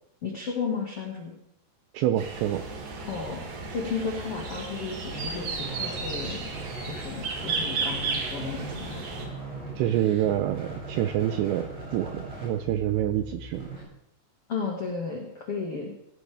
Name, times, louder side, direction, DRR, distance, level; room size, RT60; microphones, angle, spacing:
voice 1, 0.2-1.4 3.0-3.5 3.7-6.5 6.8-9.0 14.5-15.9, left 5 dB, 80° left, 0 dB, 1.3 m, -33 dB
voice 2, 1.9-2.6 9.8-13.7, right 12 dB, 85° right, 9 dB, 2.5 m, -27 dB
sound 1, 2.2-9.3, right 4 dB, 50° right, 3.6 m, -33 dB
sound 2, 5.1-13.8, right 2 dB, 30° right, 7.9 m, -40 dB
17.0 x 17.0 x 3.4 m, 0.79 s
omnidirectional pair, 5.8 m